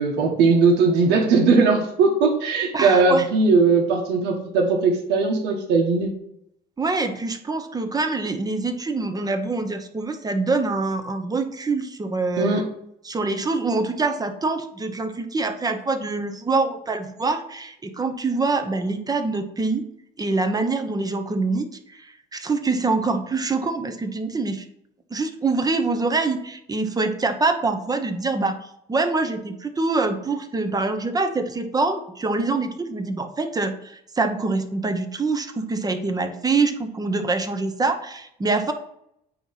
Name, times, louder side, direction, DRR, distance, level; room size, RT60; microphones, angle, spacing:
voice 1, 0.0-6.1 12.4-12.6, right 4 dB, 85° right, 0 dB, 1.3 m, -19 dB
voice 2, 2.7-3.3 6.8-12.6 13.0-19.8 20.2-24.6 25.1-28.6 28.9-38.7, right 3 dB, 20° right, 7 dB, 0.9 m, -25 dB
9.1 x 3.1 x 5.7 m, 0.74 s
cardioid pair, 110°, 17 cm